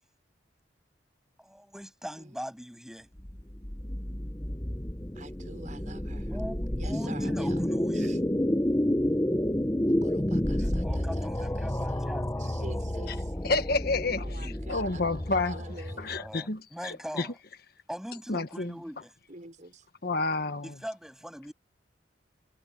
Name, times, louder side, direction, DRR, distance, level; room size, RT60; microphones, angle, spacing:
voice 1, 1.4-3.1 6.3-8.1 10.6-12.7 14.4-14.6 16.1-17.4 17.9-19.1 20.6-21.5, equal, ahead, 7.9 m, -41 dB
sound 1, 3.2-16.4, left 1 dB, 15° left, 1.0 m, -30 dB
voice 2, 5.1-6.3 6.8-7.6 7.9-8.2 9.9-12.1 12.4-13.3 14.2-16.3 19.3-19.9, right 2 dB, 40° right, 6.2 m, -47 dB
voice 3, 13.4-15.6 16.0-17.3 18.3-18.7 20.0-20.7, left 3 dB, 55° left, 1.4 m, -30 dB
head